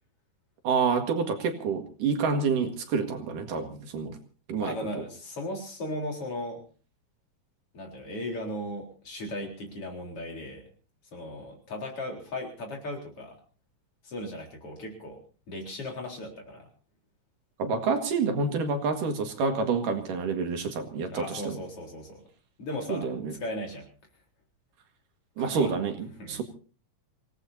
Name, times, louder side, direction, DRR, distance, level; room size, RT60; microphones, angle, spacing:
voice 1, 0.6-4.2 4.5-5.0 17.6-21.6 22.9-23.3 25.4-26.4, right 5 dB, 70° right, 5 dB, 3.4 m, -28 dB
voice 2, 4.6-6.6 7.7-10.6 11.1-13.4 14.0-15.2 15.5-16.7 21.1-22.2 22.6-23.1 23.4-23.9 25.4-25.7 26.2-26.4, left 1 dB, 40° left, 1 dB, 4.8 m, -37 dB
27.0 x 18.0 x 2.7 m, 0.39 s
omnidirectional pair, 3.9 m